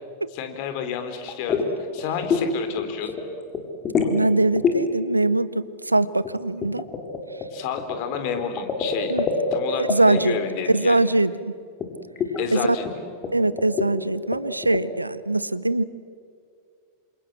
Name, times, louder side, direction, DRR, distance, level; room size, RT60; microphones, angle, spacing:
voice 1, 0.3-1.7 1.9-3.2 7.5-11.0 12.4-12.9, left 8 dB, 45° left, 7 dB, 3.6 m, -30 dB
sound 1, 1.3-1.7 2.0-2.5 2.8-3.2 3.5-4.2 4.6-4.8 6.2-9.6 9.9-10.2 11.8-11.9 12.2-12.4 12.8-12.9 13.2-13.3 13.6-13.9 14.3-14.8, left 6 dB, 25° left, 4.0 m, -25 dB
voice 2, 4.1-6.8 9.1-9.3 9.8-10.4 10.7-11.5 12.5-12.6 13.3-15.8, right 2 dB, 85° right, 18 dB, 0.8 m, -22 dB
29.0 x 26.5 x 7.5 m, 2.3 s
figure-of-eight pair, 90°, 0 cm